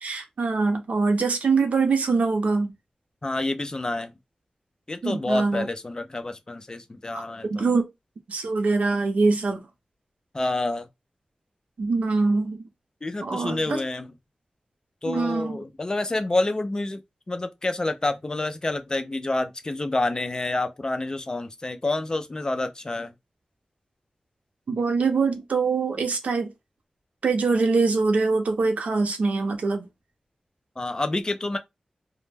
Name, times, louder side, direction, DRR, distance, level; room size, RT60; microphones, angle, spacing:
voice 1, 0.0-2.7 5.0-5.7 7.1-7.9 8.3-9.6 11.8-12.7 13.2-13.8 15.0-15.6 24.7-26.5 27.2-29.9, right 4 dB, 85° right, 0.5 m, -23 dB
voice 2, 3.2-4.1 4.9-7.7 10.3-10.9 13.0-14.1 15.0-23.1 30.8-31.6, left 2 dB, 30° left, 0.4 m, -28 dB
2.1 x 2.0 x 3.2 m
wide cardioid pair, 105°, 2 cm